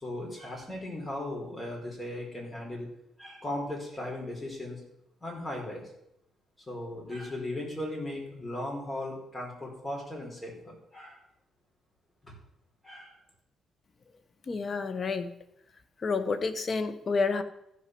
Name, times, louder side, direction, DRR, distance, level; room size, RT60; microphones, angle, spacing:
voice 1, 0.0-2.9 3.2-4.8 5.2-5.8 6.7-11.2 12.2-12.3 12.8-13.1, left 1 dB, 20° left, -1 dB, 4.6 m, -37 dB
voice 2, 14.5-15.3 16.0-17.4, left 4 dB, 40° left, 11 dB, 1.1 m, -29 dB
14.5 x 6.1 x 6.1 m, 0.79 s
cardioid pair, 90°, 0 cm